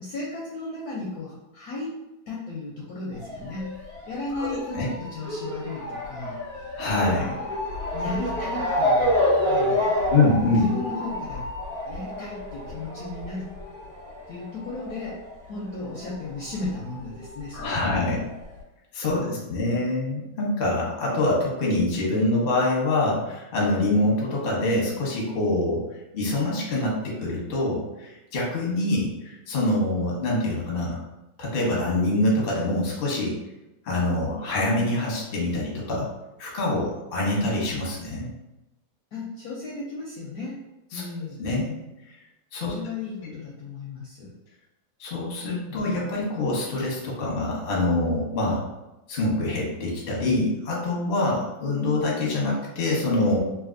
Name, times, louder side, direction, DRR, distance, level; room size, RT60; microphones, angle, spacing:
voice 1, 0.0-2.0 2.3-3.7 4.1-6.4 7.1-7.4 7.9-9.1 9.5-10.0 10.5-11.5 11.9-13.5 14.3-15.2 15.5-18.2 19.0-19.5 39.1-40.6 40.9-41.5 42.6-44.4 45.7-46.1, left 3 dB, 70° left, -4 dB, 0.9 m, -35 dB
Motor vehicle (road) / Siren, 3.1-16.1 16.4-17.6 18.2-18.3 18.6-18.7, left 1 dB, 40° right, 1.4 m, -28 dB
voice 2, 4.4-4.9 6.8-7.4 10.1-10.7 17.5-18.2 18.9-25.9 26.1-31.0 31.4-33.4 33.8-36.1 36.4-38.3 40.9-41.0 41.4-41.8 42.5-42.7 43.2-43.3 45.0-48.6 49.1-53.4, left 2 dB, 45° left, -4 dB, 0.7 m, -25 dB
3.2 x 2.5 x 2.5 m, 0.96 s
omnidirectional pair, 2.1 m